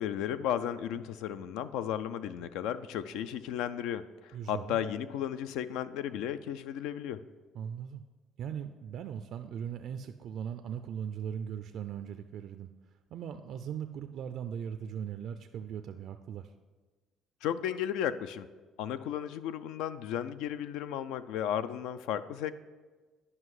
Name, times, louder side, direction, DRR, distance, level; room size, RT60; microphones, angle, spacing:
voice 1, 0.0-7.2 17.4-18.5 18.8-22.5, left 10 dB, 85° left, 13 dB, 0.4 m, -34 dB
voice 2, 4.3-4.8 7.5-8.0 8.4-12.7 13.1-16.5, right 8 dB, 60° right, 8 dB, 0.4 m, -39 dB
9.7 x 5.5 x 4.8 m, 1.3 s
cardioid pair, 110°, 0 cm